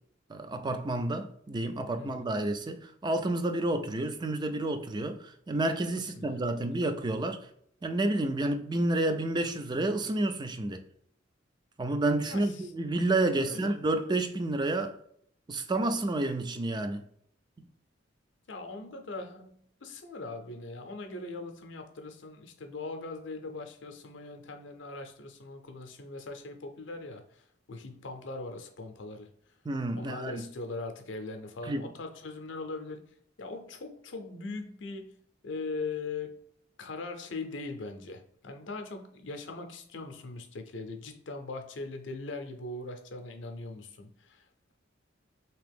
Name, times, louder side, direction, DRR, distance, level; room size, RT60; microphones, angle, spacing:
voice 1, 0.3-7.5 7.8-10.8 11.8-15.0 15.5-17.0 17.6-17.7 29.7-30.5 31.7-31.8, right 2 dB, 25° right, 0.4 m, -30 dB
voice 2, 2.0-2.3 6.0-6.4 12.2-12.7 13.4-13.8 18.5-29.3 29.9-35.2 35.4-36.4 36.8-44.4, left 3 dB, 70° left, 0.6 m, -40 dB
3.4 x 2.9 x 3.4 m
head